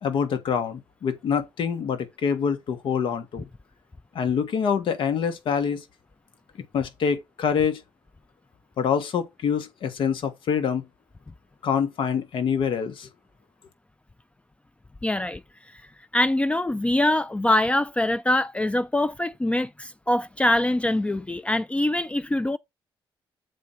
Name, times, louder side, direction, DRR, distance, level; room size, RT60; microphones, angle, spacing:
voice 1, 0.0-3.5 4.1-5.8 6.7-7.8 8.8-10.8 11.6-13.1, left 7 dB, 70° left, 1.5 m, -25 dB
voice 2, 15.0-15.4 16.1-22.6, left 1 dB, 15° left, 0.4 m, -23 dB
7.4 x 4.4 x 4.0 m
cardioid pair, 85°, 9 cm